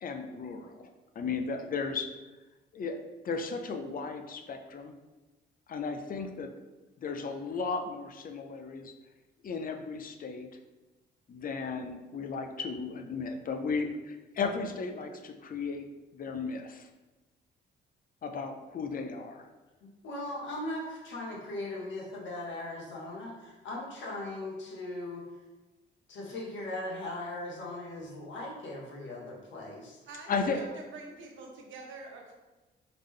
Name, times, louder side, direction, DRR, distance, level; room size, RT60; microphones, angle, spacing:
voice 1, 0.0-2.1 2.7-4.9 5.7-6.7 7.0-8.9 9.4-10.5 11.3-15.9 16.1-16.9 18.2-19.5 30.3-30.6, left 4 dB, 45° left, 6 dB, 0.5 m, -35 dB
voice 2, 19.8-25.2 26.1-30.0, left 1 dB, 70° left, -2 dB, 1.3 m, -39 dB
voice 3, 30.1-30.7 30.9-32.3, right 3 dB, 75° right, 1 dB, 1.0 m, -45 dB
3.8 x 3.6 x 3.2 m, 1.1 s
cardioid pair, 90°, 20 cm